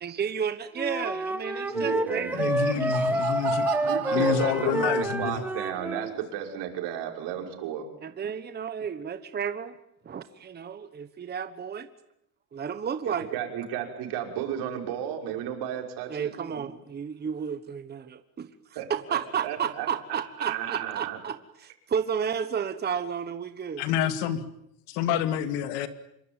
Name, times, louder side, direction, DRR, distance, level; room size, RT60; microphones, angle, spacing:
voice 1, 0.0-3.5 8.0-9.7 10.0-11.9 12.5-13.4 16.1-23.8, right 7 dB, 25° right, 10 dB, 1.2 m, -32 dB
Wind instrument woodwind instrument, 0.8-6.1, right 1 dB, 5° right, 1.4 m, -28 dB
voice 2, 1.6-2.9 3.8-7.9 13.1-16.7 18.8-21.2, right 10 dB, 70° right, 3 dB, 6.0 m, -34 dB
Laughter, 2.2-5.4, right 12 dB, 50° right, 3.0 m, -36 dB
voice 3, 2.3-3.7 4.1-5.4 23.8-24.4 24.9-25.9, left 9 dB, 85° left, 9 dB, 2.6 m, -28 dB
26.5 x 23.5 x 9.0 m, 0.77 s
cardioid pair, 150°, 41 cm